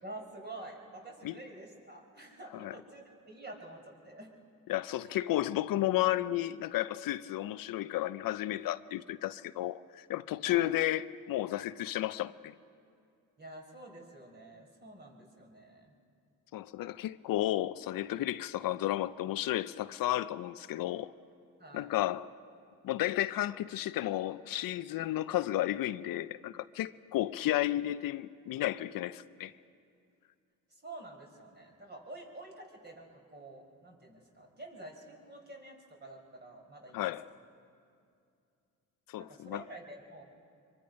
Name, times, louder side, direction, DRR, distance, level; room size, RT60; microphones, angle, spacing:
voice 1, 0.0-4.3 10.5-10.7 13.4-15.9 21.6-21.9 30.7-37.1 39.2-40.2, right 2 dB, 30° right, 4.4 m, -48 dB
voice 2, 4.7-12.5 16.5-21.1 21.7-22.3 22.8-29.5 36.9-37.3 39.1-39.6, left 14 dB, 75° left, 0.6 m, -33 dB
25.0 x 23.5 x 5.2 m
cardioid pair, 85°, 34 cm